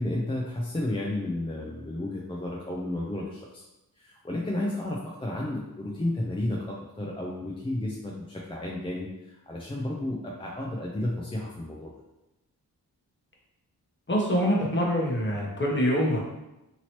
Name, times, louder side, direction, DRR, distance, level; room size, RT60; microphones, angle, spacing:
voice 1, 0.0-3.6 4.0-11.9, left 1 dB, 15° left, -4 dB, 0.5 m, -32 dB
voice 2, 14.1-16.2, equal, 30° left, -3 dB, 1.0 m, -25 dB
2.9 x 2.9 x 2.9 m, 0.97 s
cardioid pair, 50°, 39 cm